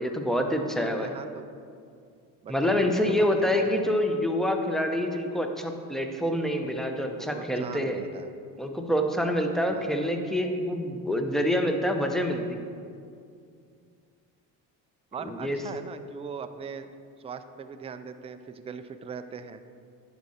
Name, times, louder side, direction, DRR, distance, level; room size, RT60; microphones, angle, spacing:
voice 1, 0.0-1.1 2.5-8.0 8.6-12.6 15.2-15.6, equal, ahead, 4 dB, 0.7 m, -26 dB
voice 2, 0.8-1.5 2.4-2.5 2.9-3.8 6.6-8.3 9.7-9.9 15.1-16.9 17.2-19.6, right 6 dB, 15° right, 9 dB, 0.3 m, -41 dB
10.0 x 4.8 x 4.2 m, 2.3 s
supercardioid pair, 95°, 39 cm